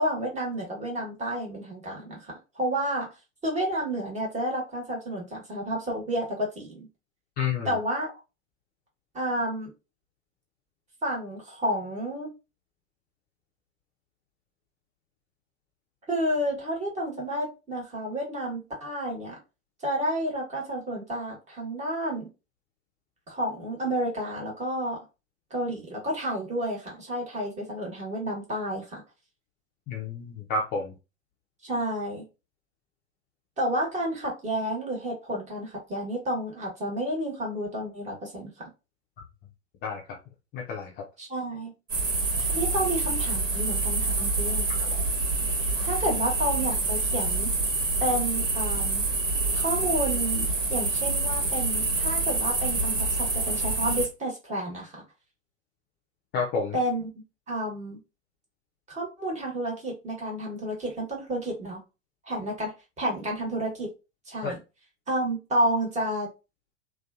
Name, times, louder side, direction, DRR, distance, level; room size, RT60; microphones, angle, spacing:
voice 1, 0.0-3.1 3.4-6.9 7.6-8.1 9.1-9.7 11.0-12.3 16.1-19.4 19.8-22.3 23.3-25.0 25.5-29.0 31.6-32.2 33.6-38.7 41.2-41.7 42.4-44.7 45.8-47.5 48.0-49.0 49.5-55.0 56.7-57.1 57.5-58.0 58.9-61.8 62.3-63.9 64.3-64.6 65.1-66.3, right 1 dB, 20° right, 1.1 m, -30 dB
voice 2, 7.4-7.7 29.9-30.9 39.8-40.0 40.5-40.9 56.3-56.8 64.4-64.5, left 4 dB, 25° left, 0.5 m, -29 dB
sound 1, 41.9-54.1, right 3 dB, 85° right, 1.2 m, -27 dB
2.6 x 2.3 x 2.4 m
figure-of-eight pair, 95°, 37 cm